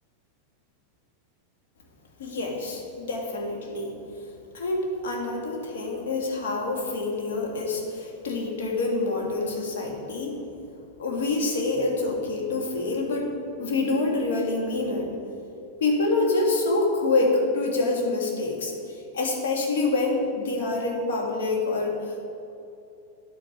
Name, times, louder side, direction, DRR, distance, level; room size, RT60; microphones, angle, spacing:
voice 1, 2.2-3.9 4.5-10.4 11.0-15.1 15.8-22.2, left 3 dB, 60° left, -1 dB, 2.0 m, -26 dB
10.5 x 8.0 x 5.1 m, 2.7 s
figure-of-eight pair, 90°, 0 cm